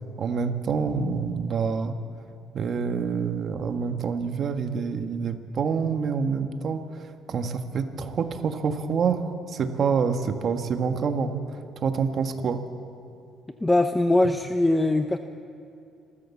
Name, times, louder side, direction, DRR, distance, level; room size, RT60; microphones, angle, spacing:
voice 1, 0.2-2.0 2.5-11.3 11.8-12.6, right 6 dB, 50° right, 7 dB, 1.6 m, -27 dB
voice 2, 13.6-15.2, left 2 dB, 10° left, 7 dB, 0.7 m, -21 dB
27.5 x 14.5 x 7.2 m, 2.5 s
cardioid pair, 100°, 0 cm